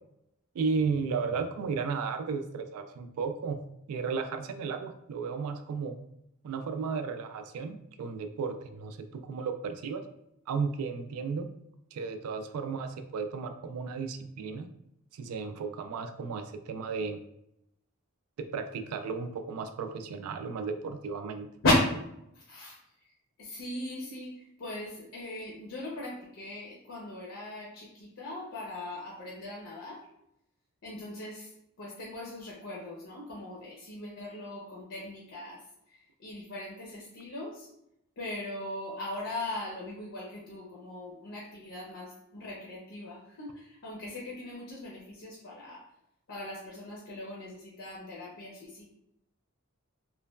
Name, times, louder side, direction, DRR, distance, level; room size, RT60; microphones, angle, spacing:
voice 1, 0.5-3.6 3.9-6.0 6.4-10.0 10.5-11.5 11.9-14.7 15.1-17.2 18.4-21.5, right 5 dB, 85° right, 9 dB, 0.3 m, -34 dB
voice 2, 23.4-24.3 24.6-30.0 30.8-31.5 31.8-35.6 36.2-37.7 38.2-45.8 46.3-48.9, left 1 dB, 60° left, -3 dB, 0.6 m, -37 dB
3.0 x 2.2 x 2.2 m, 0.80 s
head